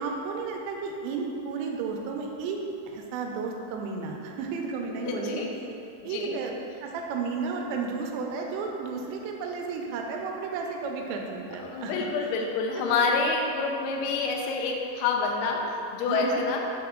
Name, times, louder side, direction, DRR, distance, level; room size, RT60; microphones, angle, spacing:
voice 1, 0.0-2.6 2.9-5.4 6.0-6.5 6.8-12.1 12.7-12.9 16.1-16.4, right 5 dB, 85° right, 1 dB, 2.9 m, -33 dB
voice 2, 5.0-5.5 6.0-6.3 11.6-15.6 15.9-16.6, left 4 dB, 80° left, 1 dB, 2.4 m, -27 dB
8.6 x 4.1 x 3.7 m, 2.6 s
omnidirectional pair, 5.1 m